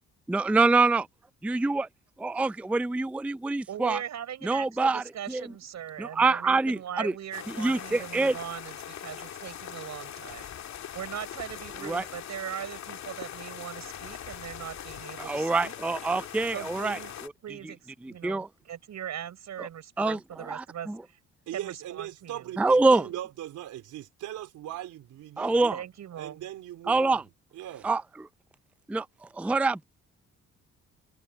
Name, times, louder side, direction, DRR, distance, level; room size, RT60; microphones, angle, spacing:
voice 1, 0.3-1.1 1.4-1.9 2.2-4.0 4.4-5.5 6.0-7.1 7.6-8.4 11.8-12.0 15.2-17.0 18.0-18.5 19.6-19.7 20.0-21.0 22.6-23.1 25.4-25.8 26.9-27.2 27.8-28.0 28.9-29.1 29.3-29.8, right 3 dB, 5° right, 0.4 m, -25 dB
voice 2, 3.7-10.5 10.9-15.7 16.5-17.1 17.4-21.2 21.5-22.5 25.7-26.4, right 10 dB, 65° right, 6.4 m, -40 dB
sound 1, 7.3-17.3, left 10 dB, 65° left, 2.1 m, -41 dB
voice 3, 21.5-25.7 26.2-27.2 27.5-27.9, right 13 dB, 85° right, 3.8 m, -39 dB
cardioid pair, 90°, 30 cm